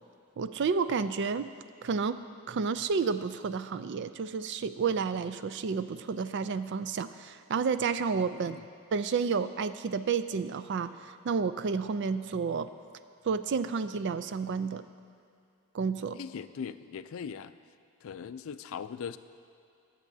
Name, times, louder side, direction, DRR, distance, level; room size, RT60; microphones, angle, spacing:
voice 1, 0.4-1.5 1.8-2.2 2.5-8.6 8.9-12.7 13.2-14.8 15.7-16.2, right 5 dB, 55° right, 12 dB, 0.4 m, -30 dB
voice 2, 16.2-17.5 18.0-19.2, left 6 dB, 70° left, 12 dB, 0.4 m, -40 dB
21.5 x 7.4 x 2.7 m, 2.5 s
head